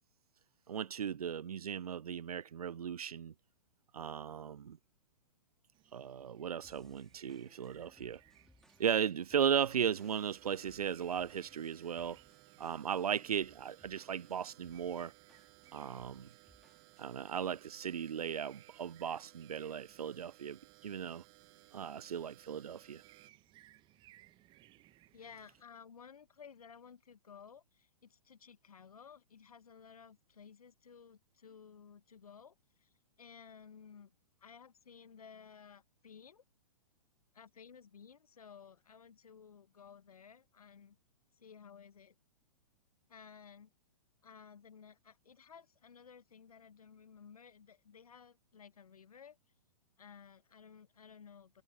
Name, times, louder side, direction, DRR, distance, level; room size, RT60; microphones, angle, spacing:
voice 1, 0.7-3.3 3.9-4.8 5.9-8.2 8.8-12.2 12.6-15.1 15.7-16.3 17.0-21.2 21.7-23.0, right 8 dB, 75° right, 0.4 m, -36 dB
sound 1, 5.7-25.6, right 16 dB, 25° right, 1.1 m, -66 dB
sound 2, 6.6-17.3, left 1 dB, ahead, 2.9 m, -68 dB
sound 3, 10.0-23.3, right 26 dB, 40° right, 6.7 m, -62 dB
voice 2, 25.1-34.1 34.4-36.4 37.3-41.0 41.4-42.1 43.1-43.7 44.2-49.4 50.0-51.6, left 6 dB, 75° left, 1.2 m, -56 dB
figure-of-eight pair, 115°, 19 cm